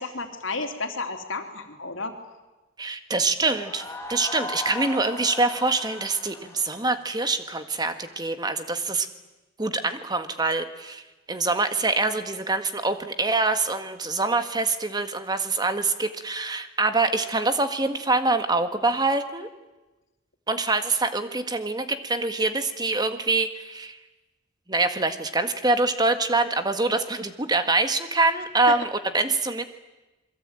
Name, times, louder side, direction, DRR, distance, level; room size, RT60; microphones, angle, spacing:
voice 1, 0.0-2.1 28.7-28.8, left 3 dB, 85° left, 5 dB, 3.3 m, -32 dB
voice 2, 2.8-3.8 4.1-9.1 9.6-11.0 11.3-19.5 20.5-24.0 24.7-29.6, right 3 dB, 20° right, 9 dB, 1.8 m, -25 dB
sound 1, 3.4-8.1, left 2 dB, 15° left, 3.0 m, -38 dB
27.5 x 22.0 x 9.1 m, 1.1 s
head